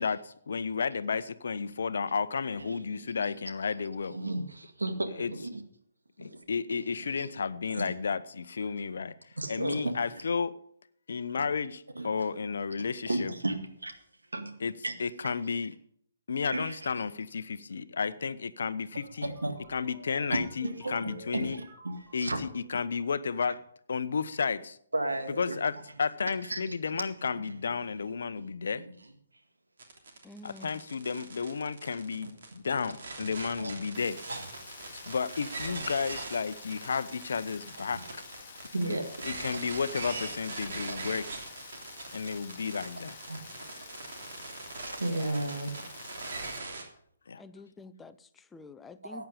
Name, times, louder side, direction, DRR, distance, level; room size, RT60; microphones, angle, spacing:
voice 1, 0.0-4.2 5.2-5.3 6.2-9.1 9.5-10.5 11.1-13.3 14.6-14.7 15.0-15.7 16.3-19.3 19.7-21.6 22.1-23.6 23.9-24.8 25.4-28.8 30.4-34.2 34.9-38.3 39.2-41.3 42.1-43.1 47.3-47.4, left 5 dB, 60° left, 0.8 m, -32 dB
voice 2, 2.6-3.3 4.1-5.6 6.2-6.3 6.7-7.3 7.7-7.9 9.4-10.2 12.0-12.1 13.1-13.9 14.3-14.9 16.5-16.9 19.2-19.6 20.6-21.6 22.2-22.4 24.9-25.6 26.4-27.4 28.3-28.4 28.8-28.9 33.6-33.7 34.3-34.4 37.8-37.9 38.7-39.0 39.4-39.8 40.9-41.0 42.0-42.1 43.3-43.5 44.9-45.7 49.0-49.3, right 2 dB, 75° right, 2.0 m, -35 dB
sound 1, 18.7-22.9, equal, 20° right, 5.8 m, -52 dB
sound 2, 29.8-46.8, right 3 dB, 55° right, 3.0 m, -42 dB
voice 3, 30.2-30.8 38.8-39.1 45.0-45.4 47.4-49.3, left 2 dB, 10° left, 0.6 m, -48 dB
Rain, 33.9-46.6, left 9 dB, 35° left, 1.2 m, -51 dB
14.5 x 9.3 x 5.1 m
figure-of-eight pair, 135°, 0 cm